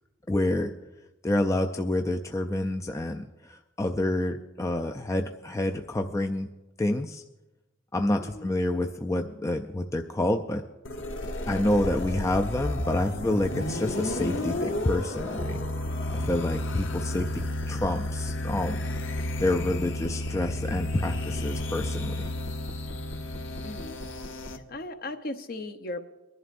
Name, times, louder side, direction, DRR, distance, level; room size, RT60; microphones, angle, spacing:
voice 1, 0.3-0.7 1.2-6.5 6.8-7.2 7.9-10.6 11.5-15.6 16.1-18.8 19.4-22.1, left 1 dB, 15° left, 5 dB, 0.3 m, -28 dB
sound 1, 10.8-24.6, left 1 dB, 90° left, 1.1 m, -32 dB
voice 2, 23.6-24.0 24.4-26.1, left 2 dB, 50° left, 8 dB, 0.7 m, -38 dB
23.5 x 11.0 x 2.5 m, 1.1 s
head